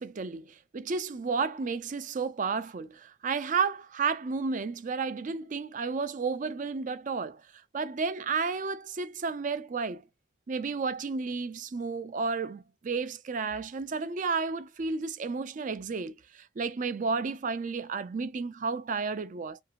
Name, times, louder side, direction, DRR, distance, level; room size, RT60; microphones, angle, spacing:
voice 1, 0.0-7.4 7.7-10.0 10.5-19.6, right 4 dB, 45° right, 0.4 m, -32 dB
2.7 x 2.6 x 2.7 m
head